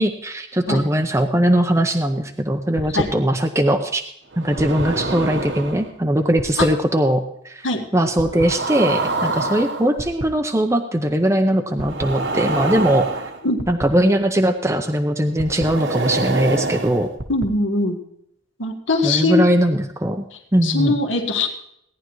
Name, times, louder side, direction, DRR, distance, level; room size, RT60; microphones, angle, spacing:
voice 1, 0.0-4.0 4.4-7.7 7.9-13.1 13.7-17.1 19.0-20.2 20.5-20.9, right 1 dB, 15° right, 4 dB, 0.6 m, -20 dB
sound 1, 2.8-3.0 4.3-5.9 6.4-6.6 8.2-10.2 11.8-13.8 15.4-17.4, right 2 dB, 65° right, 1.2 m, -25 dB
voice 2, 17.3-18.0 18.6-19.4 20.6-21.5, left 2 dB, 85° left, 3 dB, 1.8 m, -21 dB
17.0 x 10.5 x 3.1 m, 0.72 s
head